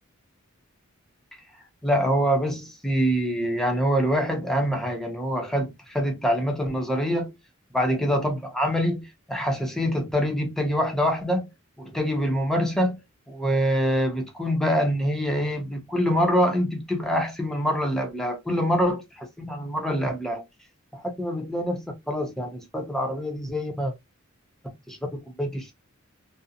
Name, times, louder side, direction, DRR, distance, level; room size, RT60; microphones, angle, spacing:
voice 1, 1.8-7.3 7.7-11.5 11.8-13.0 13.3-20.4 20.9-23.9 24.9-25.7, equal, ahead, 0.5 m, -25 dB
2.5 x 2.0 x 2.6 m
head